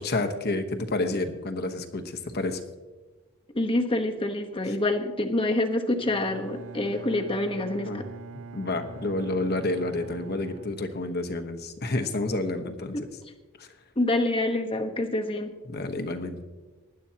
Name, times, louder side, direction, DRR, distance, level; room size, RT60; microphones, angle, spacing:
voice 1, 0.0-2.6 4.7-4.8 7.8-8.0 8.5-13.1 13.6-13.7 15.7-16.4, left 2 dB, 50° left, 7 dB, 1.1 m, -29 dB
voice 2, 3.5-8.0 12.9-13.1 14.0-15.5, left 1 dB, 25° left, 4 dB, 1.1 m, -27 dB
Bowed string instrument, 6.0-11.5, right 4 dB, 75° right, 0.6 m, -44 dB
19.5 x 11.0 x 2.9 m, 1.3 s
head